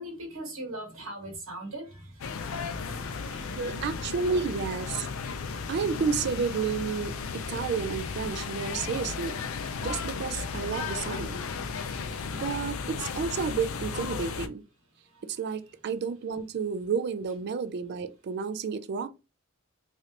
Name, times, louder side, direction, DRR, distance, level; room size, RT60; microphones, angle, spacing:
voice 1, 0.0-3.8 12.1-12.4 12.8-12.9, right 1 dB, 85° right, 1.3 m, -42 dB
sound 1, 2.2-14.5, left 5 dB, 70° left, 0.4 m, -35 dB
voice 2, 3.6-5.1 5.7-9.4 9.8-11.4 12.3-14.6 15.2-19.1, right 5 dB, 50° right, 0.3 m, -31 dB
3.2 x 2.5 x 2.8 m
head